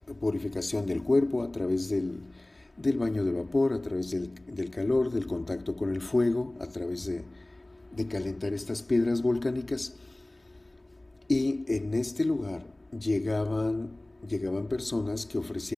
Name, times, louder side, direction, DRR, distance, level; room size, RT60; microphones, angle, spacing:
voice 1, 0.2-2.3 2.8-7.3 7.9-9.9 11.3-14.0 14.2-15.7, left 2 dB, 20° left, 2.4 m, -29 dB
cardioid pair, 90°, 0 cm